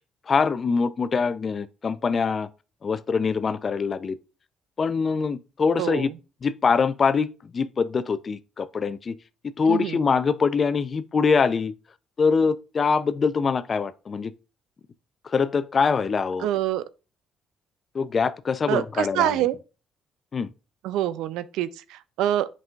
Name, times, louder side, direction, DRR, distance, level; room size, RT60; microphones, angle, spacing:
voice 1, 0.3-2.5 2.8-4.2 4.8-6.1 6.4-9.1 9.6-11.7 12.2-14.3 15.2-16.5 17.9-19.5 20.3-20.5, left 5 dB, 45° left, 0.5 m, -24 dB
voice 2, 5.8-6.1 9.7-10.0 16.4-16.9 18.7-19.5 20.8-22.5, right 12 dB, 80° right, 0.4 m, -26 dB
7.8 x 5.4 x 2.4 m
supercardioid pair, 65°, 0 cm